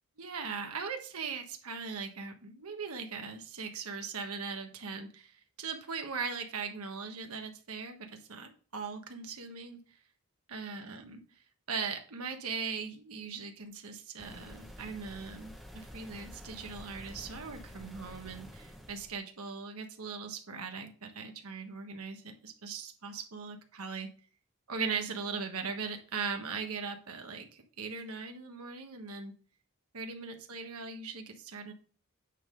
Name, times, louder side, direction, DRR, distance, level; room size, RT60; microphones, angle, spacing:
voice 1, 0.2-9.8 10.5-11.2 11.7-24.1 24.7-29.3 29.9-31.7, right 5 dB, 75° right, 5 dB, 1.3 m, -39 dB
sound 1, 14.2-19.1, equal, ahead, 0.9 m, -49 dB
9.0 x 3.8 x 5.0 m, 0.40 s
head